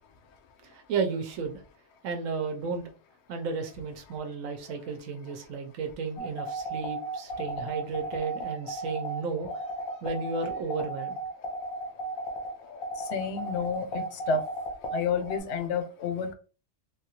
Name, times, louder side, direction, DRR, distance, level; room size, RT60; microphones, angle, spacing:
voice 1, 0.6-1.6 2.0-2.9 3.3-9.6 10.0-11.2, right 5 dB, 75° right, 0.9 m, -33 dB
sound 1, 6.2-15.4, right 1 dB, 90° left, 1.1 m, -34 dB
voice 2, 13.0-14.4 14.9-16.3, left 5 dB, 65° left, 0.8 m, -30 dB
3.2 x 2.3 x 2.8 m
omnidirectional pair, 1.4 m